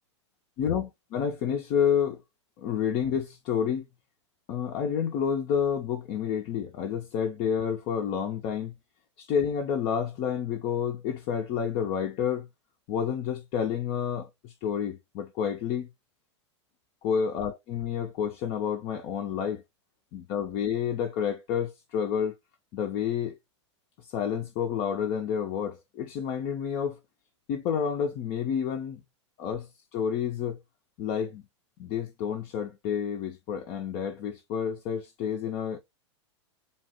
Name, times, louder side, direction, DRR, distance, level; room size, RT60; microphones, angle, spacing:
voice 1, 0.6-2.2 2.6-3.9 4.5-8.7 9.2-12.5 12.9-15.9 17.0-19.6 20.1-22.3 22.7-23.4 24.0-27.0 27.5-29.0 29.4-30.6 31.0-31.4 31.8-35.8, left 8 dB, 40° left, 0.4 m, -29 dB
2.7 x 2.1 x 2.9 m
hypercardioid pair, 100°, 15 cm